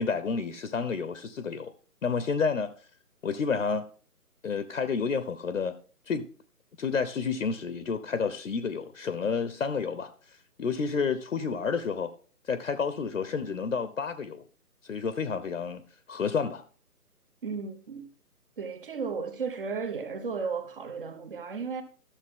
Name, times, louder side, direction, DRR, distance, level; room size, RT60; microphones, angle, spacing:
voice 1, 0.0-1.7 2.0-2.7 3.2-3.8 4.4-5.8 6.1-6.3 6.8-10.1 10.6-12.1 12.5-14.4 14.8-16.6, left 5 dB, 60° left, 0.9 m, -30 dB
voice 2, 17.4-18.1 18.6-21.8, right 5 dB, 35° right, 1.2 m, -34 dB
13.0 x 7.0 x 3.7 m
figure-of-eight pair, 155°, 46 cm